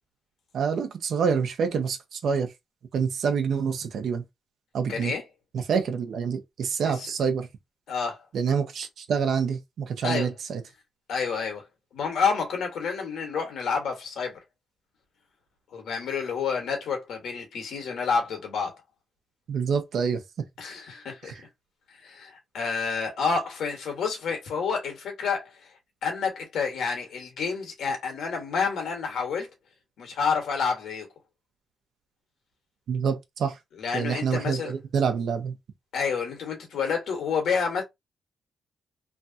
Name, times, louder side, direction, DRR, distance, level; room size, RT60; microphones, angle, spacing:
voice 1, 0.5-2.5 2.9-4.2 4.7-5.1 5.5-7.5 8.3-10.6 19.5-20.2 21.2-21.4 32.9-33.6 33.9-35.5, right 6 dB, 75° right, 0.7 m, -27 dB
voice 2, 4.9-5.2 7.0-7.1 7.9-8.2 10.0-10.3 11.1-11.6 11.9-14.4 15.7-18.8 20.6-21.4 22.0-25.6 26.0-29.5 30.0-31.1 33.8-34.7 35.9-37.8, left 5 dB, 80° left, 1.4 m, -29 dB
3.2 x 2.4 x 2.8 m
cardioid pair, 80°, 0 cm